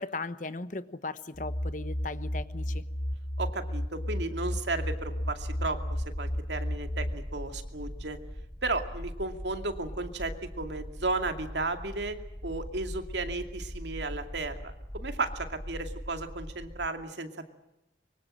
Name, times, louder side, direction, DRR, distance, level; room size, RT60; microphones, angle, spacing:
voice 1, 0.0-2.8, left 3 dB, 45° left, 1.1 m, -37 dB
sound 1, 1.3-7.1, equal, 75° left, 2.0 m, -33 dB
voice 2, 3.4-8.2 8.6-12.2 12.4-17.5, right 3 dB, 75° right, 2.5 m, -34 dB
sound 2, 4.8-16.9, equal, 10° left, 1.2 m, -41 dB
24.5 x 24.0 x 7.6 m
head